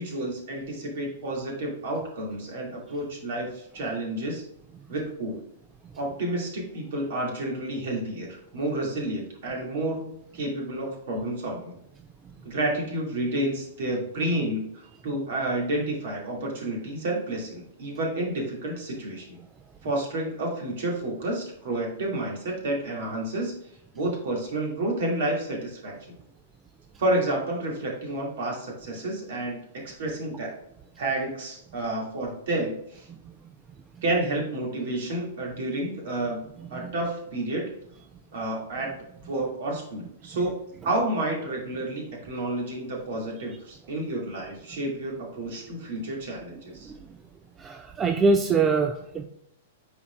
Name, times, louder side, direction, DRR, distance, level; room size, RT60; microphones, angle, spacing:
voice 1, 0.0-4.4 4.9-5.4 6.0-11.7 12.4-19.4 19.8-23.5 23.9-26.1 27.0-29.6 29.8-30.6 31.0-33.1 34.0-36.4 36.7-37.7 38.3-38.9 39.2-40.5 40.8-46.9, right 1 dB, 55° right, -1 dB, 2.3 m, -30 dB
voice 2, 47.6-49.3, right 4 dB, 20° right, 6 dB, 0.4 m, -24 dB
9.5 x 4.3 x 2.4 m, 0.76 s
figure-of-eight pair, 105°, 0 cm